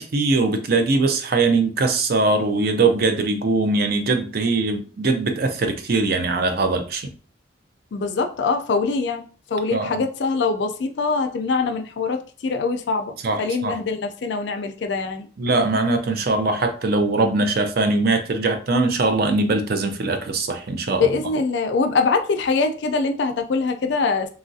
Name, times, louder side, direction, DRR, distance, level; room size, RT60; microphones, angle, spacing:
voice 1, 0.0-7.1 9.7-10.0 13.2-13.7 15.4-21.1, right 3 dB, 55° right, 6 dB, 0.4 m, -21 dB
voice 2, 7.9-9.2 9.5-15.3 20.9-24.3, left 4 dB, 65° left, 6 dB, 0.4 m, -23 dB
3.0 x 2.4 x 2.6 m, 0.39 s
head